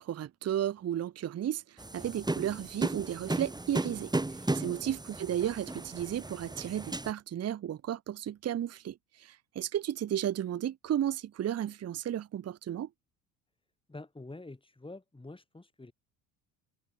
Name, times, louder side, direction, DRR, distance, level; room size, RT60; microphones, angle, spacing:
voice 1, 0.0-12.9, right 11 dB, 35° right, 1.0 m, -34 dB
sound 1, 1.8-7.1, right 2 dB, 10° right, 2.4 m, -35 dB
voice 2, 4.6-4.9 13.9-15.9, left 2 dB, 10° left, 7.1 m, -47 dB
supercardioid pair, 75°, 41 cm